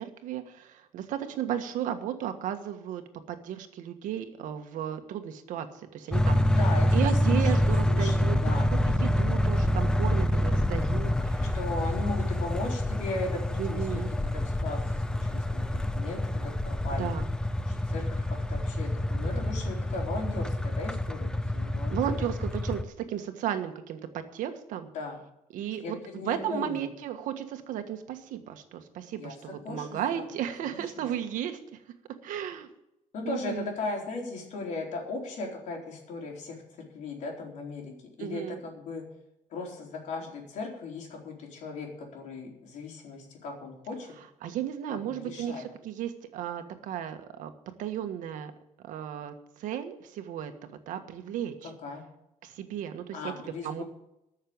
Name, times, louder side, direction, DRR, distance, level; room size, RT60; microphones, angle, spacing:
voice 1, 0.0-3.0 3.3-6.6 6.9-8.4 9.0-11.6 13.6-14.1 17.0-17.3 21.9-24.9 25.5-31.6 32.2-32.7 33.2-33.7 38.2-38.6 44.4-47.5 47.8-48.5 48.8-51.7 52.4-53.2 53.6-53.8, right 10 dB, 75° right, 8 dB, 1.5 m, -34 dB
sound 1, 6.1-22.8, left 1 dB, 5° left, 0.6 m, -27 dB
voice 2, 6.4-8.7 11.5-14.0 14.3-17.1 17.7-22.2 24.9-25.2 25.8-26.9 29.1-30.4 30.7-31.1 33.1-36.6 36.9-37.9 38.2-39.0 39.5-44.1 44.9-45.6 51.6-52.0 53.1-53.8, left 3 dB, 65° left, 0 dB, 4.1 m, -37 dB
14.0 x 6.6 x 8.7 m, 0.85 s
cardioid pair, 145°, 14 cm